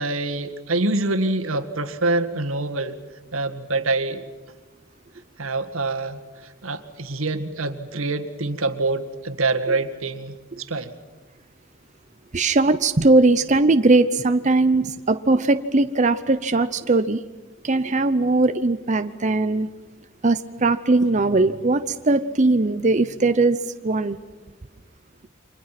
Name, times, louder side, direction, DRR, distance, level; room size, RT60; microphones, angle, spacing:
voice 1, 0.0-3.0 3.3-4.2 5.4-10.9, right 2 dB, 90° right, 7 dB, 1.9 m, -25 dB
voice 2, 12.3-17.2 17.6-19.7 20.2-24.2, right 2 dB, 35° right, 9 dB, 0.7 m, -20 dB
29.5 x 25.5 x 6.0 m, 1.3 s
head